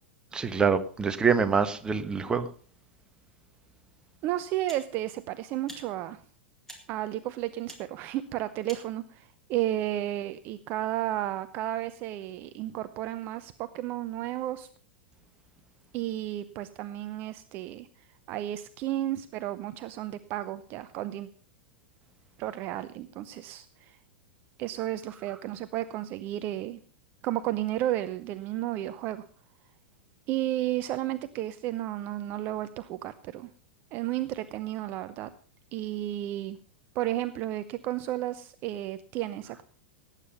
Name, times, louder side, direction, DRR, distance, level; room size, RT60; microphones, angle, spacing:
voice 1, 0.3-2.5, right 6 dB, 15° right, 9 dB, 1.3 m, -25 dB
sound 1, 3.7-3.9 4.7-4.9 5.6-5.8 6.6-6.8 7.7-7.8 8.6-8.9, equal, 5° left, 4.1 m, -46 dB
voice 2, 4.2-6.2 6.9-14.7 15.9-17.9 18.3-21.3 22.4-24.0 24.6-26.8 27.2-29.3 30.3-33.5 33.9-35.3 35.7-36.6 36.9-39.6, right 14 dB, 35° right, 12 dB, 0.8 m, -32 dB
18.0 x 9.1 x 5.3 m, 0.44 s
figure-of-eight pair, 95°, 6 cm